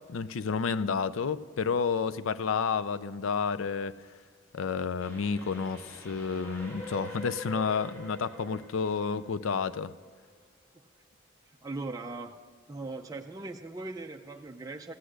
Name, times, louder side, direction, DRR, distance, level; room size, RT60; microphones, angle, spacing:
voice 1, 0.1-3.9 4.5-9.9, left 5 dB, 80° left, 16 dB, 0.5 m, -30 dB
Train, 5.0-10.3, equal, 10° left, 2.1 m, -46 dB
voice 2, 11.5-12.4 12.7-14.9, right 3 dB, 15° right, 3 dB, 0.4 m, -39 dB
15.0 x 10.0 x 6.3 m, 1.5 s
head